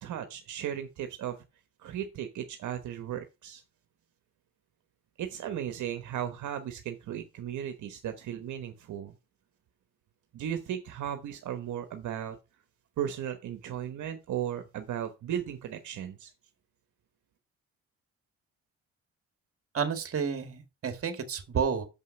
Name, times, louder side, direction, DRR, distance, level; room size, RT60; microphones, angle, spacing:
voice 1, 0.0-1.4 1.8-3.6 5.2-9.1 10.3-12.4 13.0-16.3, right 10 dB, 75° right, 1.2 m, -36 dB
voice 2, 19.7-21.9, right 6 dB, 50° right, 1.9 m, -30 dB
6.8 x 5.5 x 5.4 m
cardioid pair, 90°, 30 cm